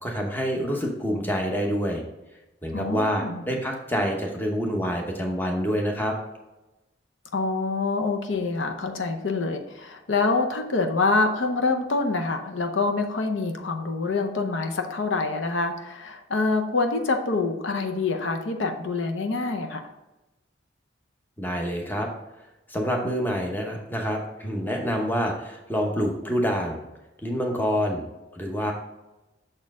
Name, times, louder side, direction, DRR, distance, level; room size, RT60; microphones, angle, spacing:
voice 1, 0.0-2.0 2.6-6.1 21.4-22.1 22.7-26.8 27.2-28.0 28.3-28.7, equal, 10° left, 1 dB, 0.8 m, -27 dB
voice 2, 2.7-3.4 7.3-19.9, left 3 dB, 75° left, 5 dB, 0.7 m, -26 dB
6.5 x 4.3 x 3.6 m, 1.0 s
head